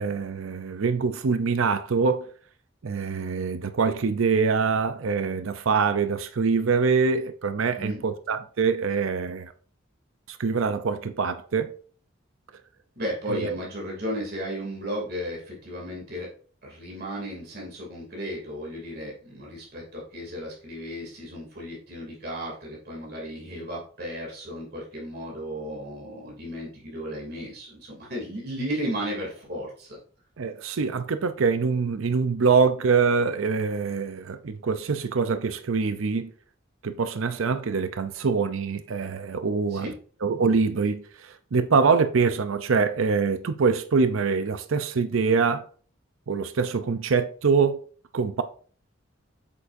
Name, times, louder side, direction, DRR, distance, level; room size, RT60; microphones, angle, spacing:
voice 1, 0.0-2.3 2.8-9.5 10.3-11.8 13.3-13.5 30.4-36.3 36.8-39.9 40.2-45.7 46.3-47.8 48.1-48.4, right 5 dB, 80° right, 0.6 m, -24 dB
voice 2, 13.0-16.3 16.6-30.0 39.7-39.9, equal, 50° right, 2.7 m, -34 dB
8.5 x 7.1 x 2.6 m
head